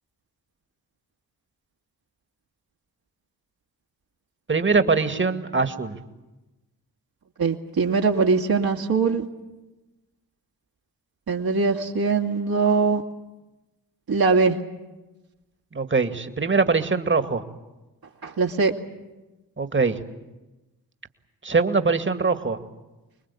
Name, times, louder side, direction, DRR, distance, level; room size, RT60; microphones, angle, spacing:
voice 1, 4.5-6.0 15.7-17.4 19.6-20.0 21.4-22.6, right 4 dB, 25° right, 8 dB, 2.2 m, -22 dB
voice 2, 7.4-9.3 11.3-13.0 14.1-14.6 18.2-18.7, right 4 dB, 55° right, 0 dB, 2.5 m, -21 dB
25.5 x 21.5 x 8.5 m, 1.1 s
hypercardioid pair, 40°, 44 cm